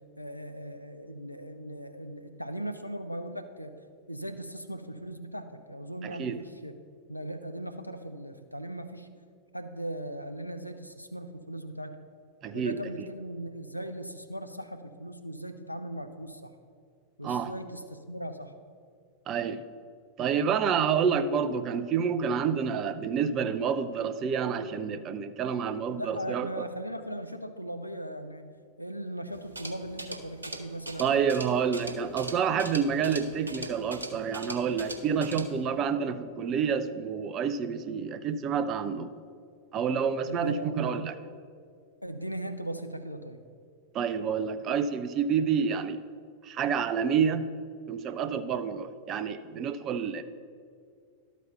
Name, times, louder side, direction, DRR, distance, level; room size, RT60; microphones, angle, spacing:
voice 1, 0.2-3.7 4.1-6.7 7.1-9.1 9.5-11.9 12.5-16.5 17.2-18.5 26.0-28.4 28.8-31.4 40.3-41.0 42.0-43.4, right 1 dB, 85° left, 8 dB, 0.5 m, -38 dB
voice 2, 6.0-6.4 12.4-12.8 17.2-17.5 19.3-19.6 20.2-26.7 31.0-39.2 39.7-41.1 43.9-46.0 46.4-47.5 47.9-50.2, right 7 dB, 35° right, 11 dB, 0.4 m, -28 dB
sound 1, 29.3-35.6, right 1 dB, 80° right, 0.7 m, -41 dB
12.0 x 4.1 x 5.3 m, 2.2 s
figure-of-eight pair, 90°, 0 cm